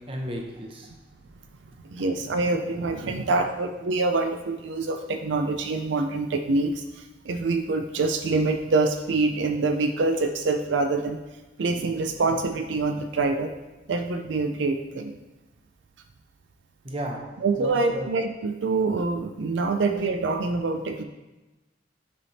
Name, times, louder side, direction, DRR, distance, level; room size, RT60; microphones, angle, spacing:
voice 1, 0.1-0.9 16.8-18.1, right 1 dB, 30° right, 2 dB, 0.8 m, -34 dB
voice 2, 1.9-6.8 7.3-11.2 11.6-13.5 13.9-15.2 17.4-21.0, right 3 dB, 80° right, 6 dB, 0.5 m, -25 dB
8.3 x 3.4 x 4.1 m, 1.1 s
head